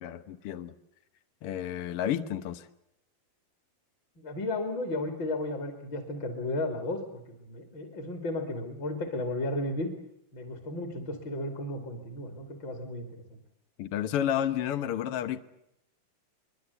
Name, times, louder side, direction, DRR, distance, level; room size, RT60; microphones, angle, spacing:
voice 1, 0.0-0.7 1.4-2.7 13.8-15.4, left 10 dB, 90° left, 11 dB, 1.2 m, -31 dB
voice 2, 4.2-9.9 10.3-13.4, left 1 dB, 35° left, 5 dB, 2.7 m, -34 dB
23.0 x 23.0 x 8.2 m, 0.79 s
omnidirectional pair, 4.3 m